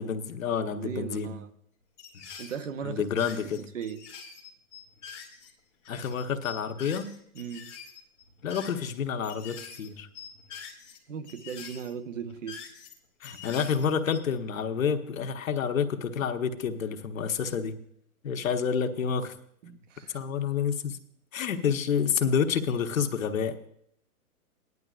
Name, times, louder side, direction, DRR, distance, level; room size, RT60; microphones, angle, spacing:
voice 1, 0.0-1.3 2.1-2.2 2.8-3.6 5.9-7.1 8.4-10.1 13.2-17.8 18.2-19.4 20.1-21.0 21.3-23.6, left 7 dB, 60° left, 6 dB, 1.1 m, -29 dB
voice 2, 0.7-1.5 2.4-3.1 3.4-4.0 7.3-7.7 11.1-12.6 19.6-20.2, right 7 dB, 55° right, 10 dB, 1.0 m, -37 dB
sound 1, 2.0-2.7 3.0-5.5 5.8-9.0 9.2-9.9 10.1-11.0 11.2-12.9 13.2-14.4, left 6 dB, 5° left, 0.6 m, -45 dB
18.0 x 11.0 x 2.4 m, 0.69 s
hypercardioid pair, 170°, 44 cm